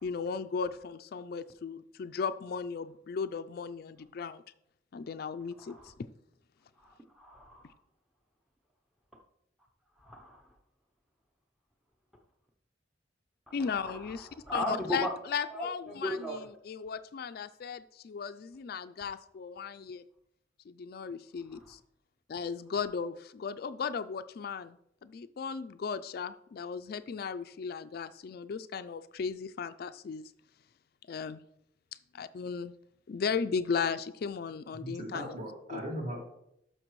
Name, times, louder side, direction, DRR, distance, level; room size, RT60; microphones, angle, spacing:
voice 1, 0.0-4.4 4.9-5.9 13.5-20.0 20.7-21.8 22.3-30.3 31.1-31.4 32.1-32.7 33.1-35.4 35.7-35.8, left 5 dB, 55° left, 0.3 m, -36 dB
voice 2, 5.6-5.9 6.8-7.8 10.0-10.4 13.6-15.1 15.5-16.4 21.5-21.6, equal, ahead, 0.7 m, -37 dB
voice 3, 34.8-36.2, equal, 40° right, 2.2 m, -38 dB
11.5 x 6.1 x 3.1 m
head